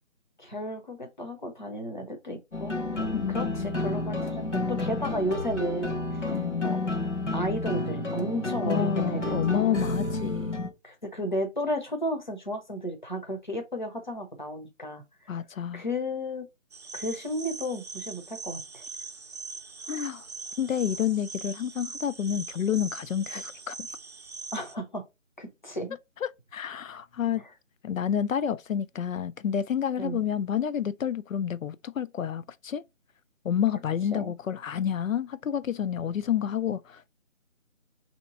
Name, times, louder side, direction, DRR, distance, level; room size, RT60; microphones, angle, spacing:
voice 1, 0.4-6.4 6.6-6.8 7.3-9.6 10.8-15.0 15.3-15.4 15.7-16.5 16.9-18.8 24.5-25.1 25.4-26.0 27.4-27.5 30.0-30.2 34.1-34.3, equal, 35° left, 0.7 m, -33 dB
sound 1, 2.5-10.7, left 2 dB, 65° left, 1.1 m, -30 dB
voice 2, 3.1-3.7 6.3-6.8 8.6-10.6 15.3-15.8 19.9-20.2 20.6-23.8 26.2-27.4 27.8-32.8 33.4-37.1, left 9 dB, 85° left, 0.5 m, -29 dB
sound 2, 16.7-24.8, right 4 dB, 55° right, 0.5 m, -41 dB
3.3 x 2.9 x 4.0 m
figure-of-eight pair, 180°, 39 cm